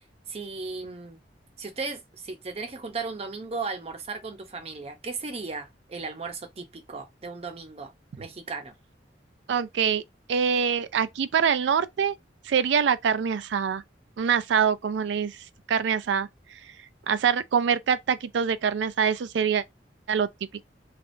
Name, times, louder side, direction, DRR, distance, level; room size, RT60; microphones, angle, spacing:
voice 1, 0.3-1.2 1.6-7.9 8.2-8.7, right 4 dB, 35° right, 0.6 m, -36 dB
voice 2, 9.5-10.0 10.3-12.1 12.5-13.8 14.2-15.4 15.7-16.3 17.1-19.6 20.1-20.3, right 7 dB, 75° right, 0.4 m, -24 dB
3.3 x 2.4 x 2.5 m
head